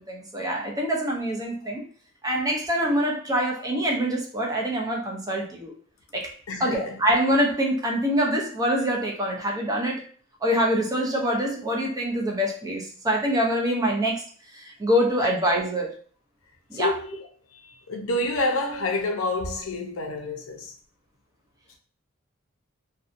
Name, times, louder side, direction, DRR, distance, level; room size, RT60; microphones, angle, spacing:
voice 1, 0.0-1.9 2.2-5.7 6.1-6.3 6.6-10.0 10.4-14.3 14.5-16.0 16.7-16.9, equal, 20° right, 0.5 m, -25 dB
voice 2, 6.5-7.0 16.7-17.2 17.6-20.7, left 2 dB, 85° left, 0.6 m, -28 dB
2.6 x 2.2 x 2.5 m
head